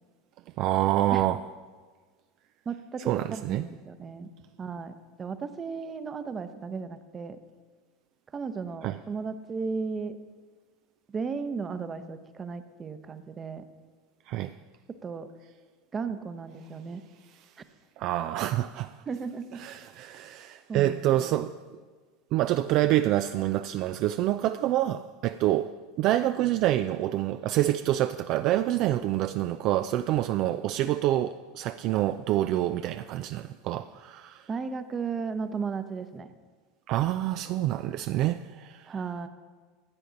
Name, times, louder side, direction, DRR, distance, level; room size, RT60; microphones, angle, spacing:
voice 1, 0.6-1.4 3.1-3.6 8.8-8.9 14.3-14.5 18.0-18.9 19.6-21.6 22.3-34.5 36.9-38.9, right 14 dB, 55° right, 0.3 m, -27 dB
voice 2, 2.7-4.3 4.6-7.4 8.3-10.2 11.1-13.6 15.0-15.3 15.9-17.0 19.1-19.6 20.7-21.5 34.5-36.3 38.9-39.3, right 5 dB, 30° right, 0.8 m, -35 dB
14.5 x 9.0 x 3.9 m
hypercardioid pair, 85°, 0 cm